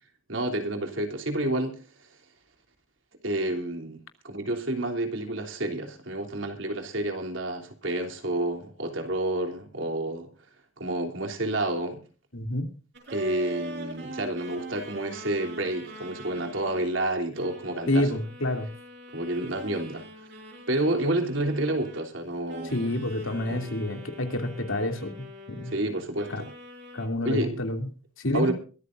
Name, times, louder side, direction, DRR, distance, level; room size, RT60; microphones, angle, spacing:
voice 1, 0.3-1.8 3.2-4.0 4.2-10.3 10.8-12.0 13.1-18.1 19.1-20.0 20.7-22.9 23.5-23.8 25.7-26.5 27.2-27.6 28.3-28.5, right 1 dB, 75° right, 4 dB, 3.2 m, -29 dB
voice 2, 12.3-12.7 17.9-18.7 22.7-25.1 25.5-25.7 26.3-26.4 26.9-27.9 28.2-28.5, left 1 dB, 90° left, 5 dB, 2.8 m, -28 dB
sound 1, 12.9-16.9 17.3-22.2 22.5-25.8 26.1-27.1, right 1 dB, 55° right, 6.3 m, -43 dB
22.5 x 14.0 x 2.6 m, 0.37 s
head